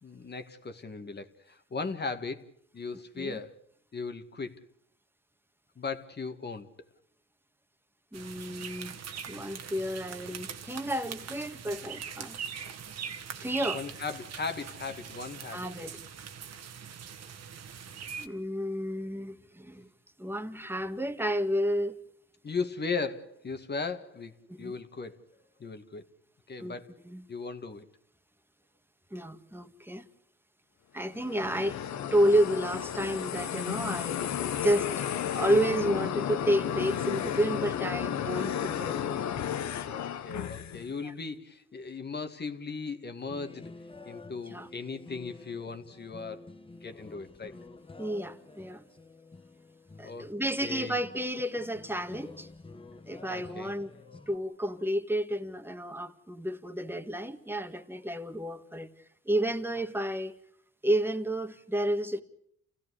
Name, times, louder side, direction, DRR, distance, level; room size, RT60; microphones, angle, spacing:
voice 1, 0.0-3.6 3.9-4.6 5.8-6.7 13.7-15.7 22.4-25.2 25.6-26.1 26.5-26.9 27.3-27.9 39.9-43.7 44.1-46.5 46.8-47.6 50.0-51.0 53.3-53.7 54.0-54.3, left 4 dB, 35° left, 1.9 m, -37 dB
voice 2, 8.1-8.9 9.3-12.4 13.4-13.8 15.5-16.0 18.2-19.9 20.2-22.0 24.5-24.7 26.6-27.2 29.1-30.1 30.9-31.8 32.1-34.2 34.6-34.9 35.3-39.0 41.0-41.1 44.5-44.7 48.0-48.8 50.0-52.5 53.1-53.9 54.3-58.9 59.3-60.4 60.8-62.2, equal, 5° right, 1.8 m, -31 dB
sound 1, 8.1-18.3, right 7 dB, 60° right, 1.8 m, -42 dB
sound 2, 31.1-40.9, left 9 dB, 65° left, 1.3 m, -33 dB
sound 3, 43.2-54.4, left 3 dB, 15° left, 1.1 m, -50 dB
29.0 x 16.5 x 9.8 m
cardioid pair, 90°, 30 cm